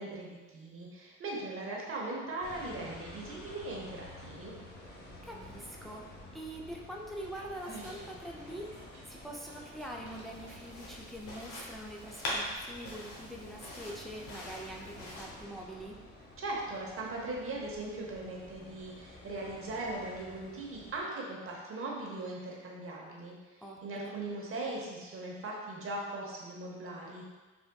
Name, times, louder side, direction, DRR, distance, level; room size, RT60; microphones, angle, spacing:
voice 1, 0.0-4.5 16.4-23.3 23.8-27.3, right 2 dB, 45° right, -2 dB, 0.8 m, -39 dB
sound 1, 2.4-21.0, left 2 dB, 35° left, 0.7 m, -51 dB
voice 2, 5.2-8.7 9.1-16.0 23.6-24.2, right 1 dB, ahead, -1 dB, 0.3 m, -44 dB
Dog, 7.5-12.9, right 2 dB, 75° right, 1.0 m, -55 dB
sound 2, 10.3-15.2, left 1 dB, 90° left, 0.8 m, -42 dB
3.4 x 2.5 x 2.2 m, 1.3 s
cardioid pair, 90°, 30 cm